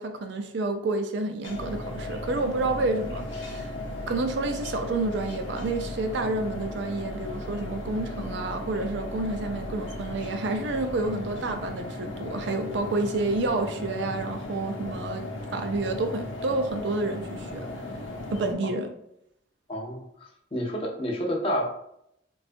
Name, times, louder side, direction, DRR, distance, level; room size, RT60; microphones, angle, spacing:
voice 1, 0.0-3.7 4.1-17.7 18.3-18.9, right 2 dB, 65° right, 6 dB, 0.4 m, -29 dB
sound 1, 1.4-18.5, left 1 dB, 80° left, 0.7 m, -36 dB
voice 2, 19.7-20.0 20.5-21.7, equal, 30° left, 0 dB, 0.6 m, -28 dB
3.6 x 2.3 x 2.4 m, 0.75 s
head